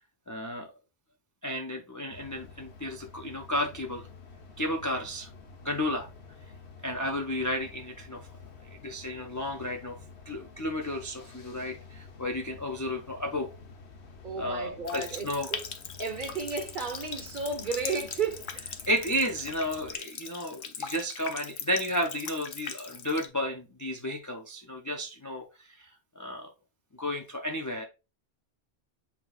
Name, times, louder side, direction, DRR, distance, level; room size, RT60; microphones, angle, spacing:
voice 1, 0.3-0.7 1.4-4.1 4.6-5.3 5.6-6.1 6.8-8.3 8.8-10.0 10.3-13.5 14.4-15.5 18.9-25.9 26.2-26.5 27.0-27.8, equal, 30° left, 0.3 m, -32 dB
sound 1, 2.1-20.0, left 4 dB, 90° left, 1.1 m, -50 dB
voice 2, 14.2-15.6 16.0-18.6, right 4 dB, 50° right, 1.0 m, -33 dB
Water tap faucet, 14.8-23.3, left 6 dB, 60° left, 0.7 m, -40 dB
7.9 x 2.8 x 2.3 m
omnidirectional pair, 1.1 m